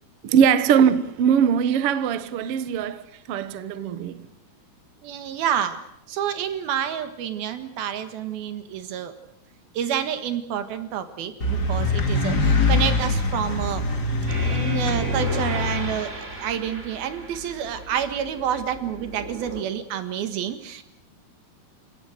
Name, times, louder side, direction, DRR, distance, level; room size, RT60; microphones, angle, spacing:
voice 1, 0.2-4.3, right 8 dB, 90° right, 1.3 m, -21 dB
voice 2, 5.0-5.8 6.1-9.1 9.7-13.8 14.4-20.8, right 9 dB, 70° right, 3.4 m, -28 dB
sound 1, 11.4-16.0, left 3 dB, 30° left, 2.2 m, -23 dB
sound 2, 14.3-19.6, right 2 dB, 20° right, 3.0 m, -36 dB
28.5 x 17.0 x 7.9 m
omnidirectional pair, 4.5 m